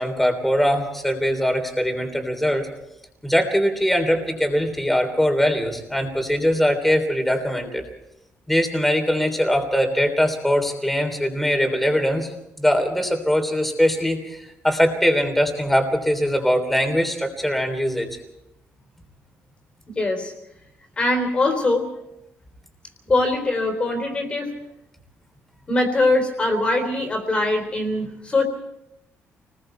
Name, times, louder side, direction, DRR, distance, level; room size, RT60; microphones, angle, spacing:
voice 1, 0.0-2.7 3.2-7.8 8.5-12.3 12.6-18.1, equal, 5° left, 5 dB, 3.3 m, -21 dB
voice 2, 19.9-20.3 21.0-21.9 23.1-24.5 25.7-28.4, left 2 dB, 25° left, 4 dB, 3.6 m, -22 dB
29.0 x 20.5 x 4.5 m, 0.87 s
cardioid pair, 155°, 5 cm